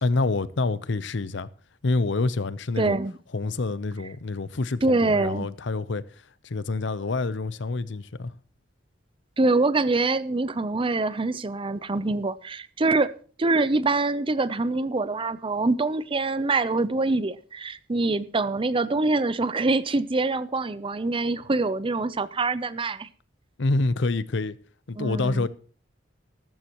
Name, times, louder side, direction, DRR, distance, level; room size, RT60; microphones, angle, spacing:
voice 1, 0.0-1.5 1.8-3.0 3.3-6.0 6.4-8.3 23.6-24.6 24.9-25.5, left 3 dB, 65° left, 0.7 m, -27 dB
voice 2, 2.8-3.2 4.8-5.5 9.4-23.1 25.0-25.5, right 3 dB, 25° right, 0.6 m, -25 dB
13.5 x 13.5 x 3.0 m
head